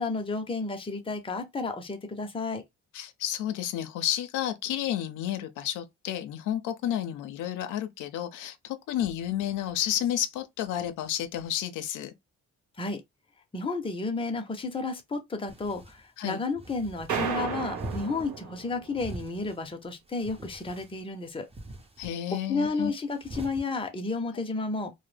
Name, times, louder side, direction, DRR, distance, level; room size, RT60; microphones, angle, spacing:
voice 1, 0.0-2.6 12.8-13.0 13.5-21.5 22.5-24.9, left 3 dB, 20° left, 0.6 m, -32 dB
voice 2, 2.9-12.1 16.2-16.4 22.0-22.9, left 11 dB, 85° left, 0.5 m, -31 dB
sound 1, 15.5-16.0 16.5-17.1 17.7-18.3 18.9-19.6 20.1-21.0 21.5-22.1 23.1-23.6, right 1 dB, 20° right, 0.7 m, -42 dB
sound 2, 17.1-19.1, right 7 dB, 70° right, 1.0 m, -33 dB
2.1 x 2.1 x 3.2 m
cardioid pair, 90°, 30 cm